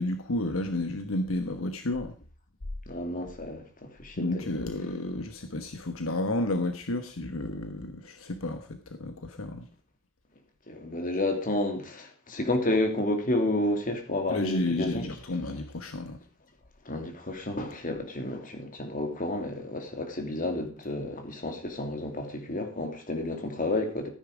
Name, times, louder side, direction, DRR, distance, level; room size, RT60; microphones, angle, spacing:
voice 1, 0.0-2.2 4.2-9.7 14.3-16.2, left 2 dB, 70° left, 1.2 m, -31 dB
voice 2, 2.9-4.7 10.7-15.1 16.8-24.1, left 1 dB, 40° left, 2.8 m, -31 dB
14.0 x 9.7 x 5.0 m
head